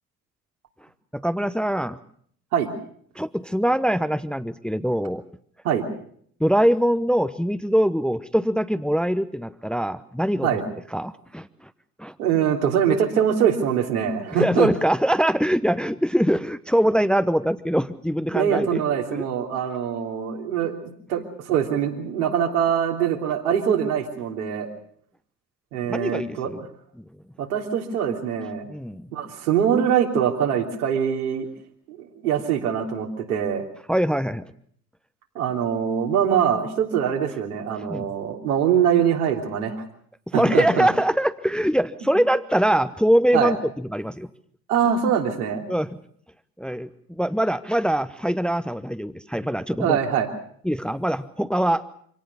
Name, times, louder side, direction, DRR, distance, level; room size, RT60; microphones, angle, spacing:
voice 1, 1.1-2.0 3.2-5.2 6.4-10.5 10.9-11.5 12.0-12.1 14.4-18.8 19.1-19.2 25.9-26.6 27.0-27.1 28.7-29.1 33.9-34.5 37.9-38.1 40.3-43.6 43.9-44.3 45.7-45.9 46.6-46.9 47.2-50.0 50.6-51.8, equal, ahead, 12 dB, 1.0 m, -23 dB
voice 2, 12.2-14.7 18.3-20.8 21.1-24.7 25.7-26.5 27.4-28.6 29.1-31.5 31.9-33.6 35.3-39.8 40.3-40.9 43.3-43.5 44.7-45.7 49.8-50.3, right 8 dB, 70° right, 2 dB, 3.3 m, -23 dB
26.0 x 18.0 x 7.0 m, 0.63 s
figure-of-eight pair, 50°, 46 cm